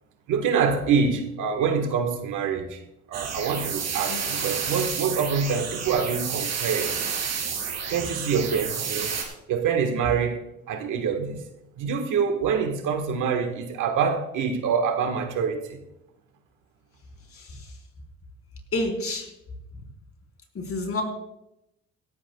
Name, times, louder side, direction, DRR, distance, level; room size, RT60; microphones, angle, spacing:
voice 1, 0.3-2.8 3.1-6.9 7.9-9.1 9.5-11.4 11.8-15.8, right 6 dB, 80° right, 1.5 m, -25 dB
sound 1, 3.1-9.2, right 6 dB, 60° right, 3.7 m, -30 dB
voice 2, 18.7-19.3 20.6-21.0, left 2 dB, 50° left, 4.1 m, -28 dB
17.5 x 14.5 x 2.3 m
cardioid pair, 90°, 30 cm